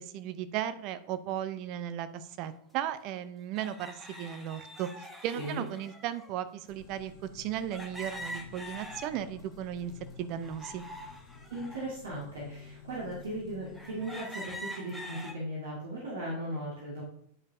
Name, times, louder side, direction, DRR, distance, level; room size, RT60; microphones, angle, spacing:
voice 1, 0.0-9.9 10.2-10.8, right 10 dB, 40° right, 11 dB, 0.6 m, -36 dB
sound 1, 2.4-2.5 3.6-6.3 7.7-9.5 9.9-11.9 12.5-12.6 13.2-13.3 13.7-15.3, equal, ahead, 1.1 m, -44 dB
voice 2, 5.4-5.7 11.5-17.0, right 1 dB, 60° right, -4 dB, 1.8 m, -37 dB
sound 2, 6.7-14.3, left 5 dB, 50° left, 1.0 m, -51 dB
9.5 x 5.2 x 2.6 m, 0.71 s
figure-of-eight pair, 90°, 0 cm